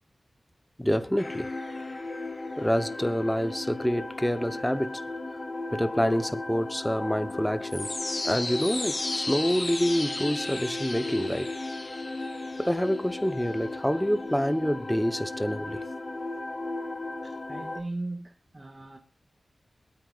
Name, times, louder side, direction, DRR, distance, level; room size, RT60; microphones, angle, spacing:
voice 1, 0.8-1.5 2.6-5.0 5.7-8.0 8.2-11.5 12.6-15.8, equal, 5° left, 1.1 m, -27 dB
sound 1, 1.2-17.8, left 2 dB, 35° left, 1.8 m, -35 dB
voice 2, 17.2-19.0, right 2 dB, 25° right, 2.1 m, -38 dB
25.0 x 9.2 x 2.5 m
wide cardioid pair, 90°, 0 cm